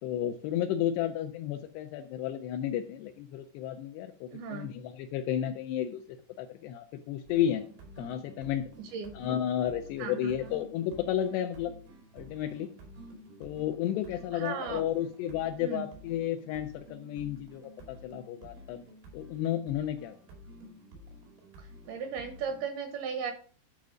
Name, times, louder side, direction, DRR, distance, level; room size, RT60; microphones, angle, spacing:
voice 1, 0.0-7.6 8.0-8.7 9.1-11.7 12.1-12.7 13.4-18.8 19.1-20.1, left 10 dB, 80° left, 6 dB, 2.4 m, -32 dB
voice 2, 4.3-4.7 8.8-9.1 10.0-10.6 14.3-14.8 15.6-15.9 21.6-23.3, right 6 dB, 75° right, 7 dB, 2.5 m, -37 dB
sound 1, 7.3-22.7, equal, 90° right, 4.9 m, -51 dB
11.0 x 4.7 x 5.0 m, 0.43 s
omnidirectional pair, 5.3 m